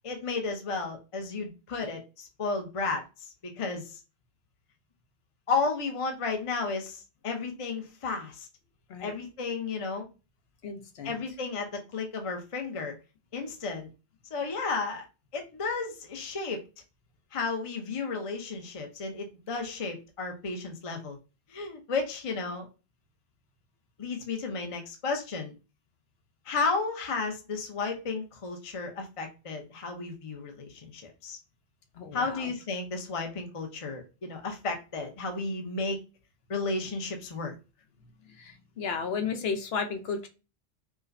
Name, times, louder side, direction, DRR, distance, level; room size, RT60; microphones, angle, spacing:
voice 1, 0.0-4.0 5.5-8.5 9.0-10.1 11.0-12.9 13.3-13.9 14.3-15.1 15.3-16.6 17.3-21.2 21.5-22.7 24.0-25.5 26.5-31.4 32.1-36.0 36.5-37.5, left 4 dB, 35° left, 3 dB, 0.7 m, -33 dB
voice 2, 10.6-11.2 32.0-32.5 38.4-40.3, left 5 dB, 70° left, 6 dB, 0.9 m, -33 dB
4.8 x 2.1 x 2.5 m, 0.30 s
omnidirectional pair, 1.1 m